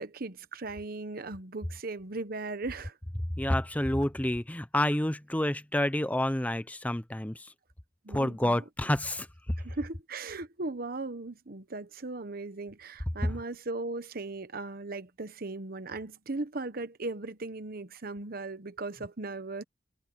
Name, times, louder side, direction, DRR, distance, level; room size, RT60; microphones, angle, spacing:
voice 1, 0.0-3.0 8.0-8.6 9.6-19.6, right 3 dB, 55° right, 1.1 m, -38 dB
voice 2, 3.4-7.5 8.1-9.6 13.2-13.4, left 1 dB, 10° left, 0.7 m, -29 dB
head